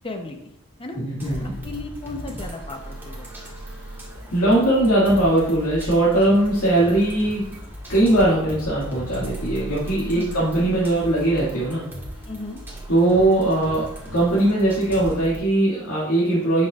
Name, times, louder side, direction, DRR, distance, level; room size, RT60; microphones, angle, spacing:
voice 1, 0.0-0.4 0.8-1.0 1.4-3.3 10.1-10.3 12.3-12.6, left 2 dB, 25° left, 4 dB, 0.8 m, -35 dB
voice 2, 0.9-1.5 4.3-7.5 7.9-11.9 12.9-16.7, right 1 dB, 80° left, -8 dB, 2.0 m, -20 dB
sound 1, 1.2-15.4, right 1 dB, 10° right, 1.7 m, -37 dB
9.0 x 5.8 x 2.4 m, 0.84 s
head